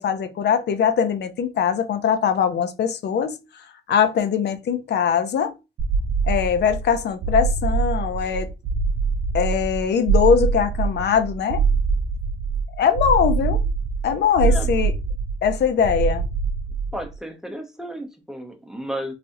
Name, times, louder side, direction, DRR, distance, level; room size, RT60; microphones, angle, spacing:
voice 1, 0.0-3.4 3.9-5.5 6.3-8.5 9.3-11.6 12.8-13.6 14.0-14.9 15.4-16.2, left 7 dB, 60° left, 0.6 m, -21 dB
sound 1, 5.8-17.1, right 5 dB, 60° right, 0.7 m, -24 dB
voice 2, 16.9-19.1, right 1 dB, 5° right, 0.7 m, -33 dB
3.3 x 2.5 x 2.6 m
cardioid pair, 90°, 20 cm